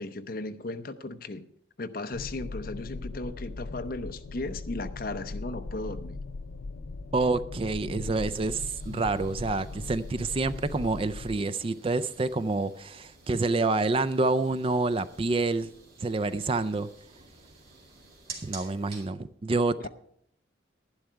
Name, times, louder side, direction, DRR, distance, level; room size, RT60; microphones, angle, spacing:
voice 1, 0.0-1.5 1.8-6.2 19.8-19.9, left 2 dB, 50° left, 0.7 m, -36 dB
sound 1, 2.1-11.4, left 3 dB, 90° left, 0.6 m, -39 dB
voice 2, 7.1-15.7 16.0-16.9 18.4-19.9, right 3 dB, 30° right, 0.4 m, -28 dB
sound 2, 8.1-19.1, right 4 dB, 50° right, 2.9 m, -50 dB
11.5 x 11.5 x 4.5 m
head